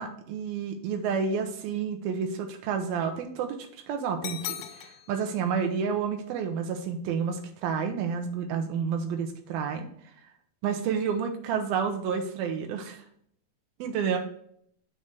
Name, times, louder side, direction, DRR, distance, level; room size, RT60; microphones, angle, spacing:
voice 1, 0.0-3.6 3.9-9.9 10.6-13.0 13.8-14.2, right 6 dB, 85° right, 5 dB, 2.7 m, -30 dB
sound 1, 4.2-5.3, left 10 dB, 80° left, 2.2 m, -37 dB
7.0 x 6.7 x 3.4 m, 0.65 s
omnidirectional pair, 4.2 m